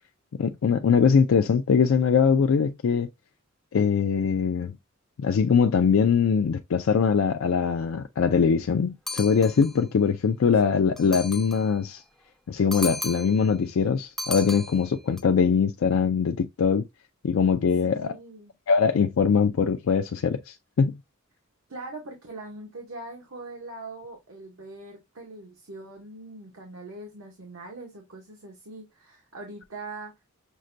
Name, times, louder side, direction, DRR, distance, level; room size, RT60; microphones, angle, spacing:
voice 1, 0.4-3.1 3.7-4.8 5.2-12.0 12.5-16.8 17.2-18.1 18.7-21.0, left 6 dB, 75° left, 0.4 m, -22 dB
sound 1, 9.1-9.8 11.0-11.7 12.7-13.5 14.2-15.2, left 2 dB, ahead, 0.4 m, -35 dB
voice 2, 17.8-18.5 21.7-30.1, right 2 dB, 85° right, 1.0 m, -42 dB
6.1 x 2.2 x 2.6 m
head